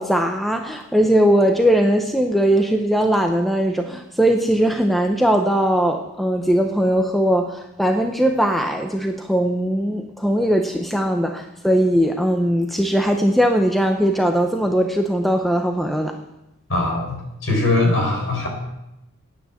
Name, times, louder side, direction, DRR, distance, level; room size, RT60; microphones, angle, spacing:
voice 1, 0.0-16.2, equal, ahead, 4 dB, 0.6 m, -19 dB
voice 2, 16.7-18.5, left 2 dB, 60° left, 0 dB, 4.4 m, -21 dB
10.0 x 8.7 x 7.1 m, 0.91 s
head